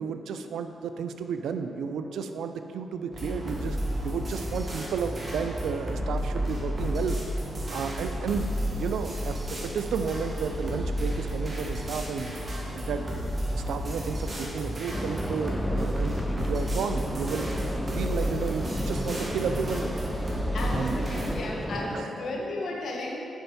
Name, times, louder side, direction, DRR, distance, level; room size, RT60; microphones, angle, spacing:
voice 1, 0.0-3.8 4.0-7.2 7.7-12.3 12.7-13.2 13.5-17.5 17.9-20.0 20.7-21.0 21.9-22.1, right 6 dB, 80° right, 8 dB, 0.4 m, -32 dB
sound 1, 3.1-21.3, equal, 40° right, 1.7 m, -32 dB
sound 2, 14.9-22.1, equal, ahead, 0.6 m, -34 dB
voice 2, 20.5-23.2, left 2 dB, 70° left, 0 dB, 1.1 m, -34 dB
7.0 x 5.6 x 4.2 m, 2.9 s
supercardioid pair, 50°, 0 cm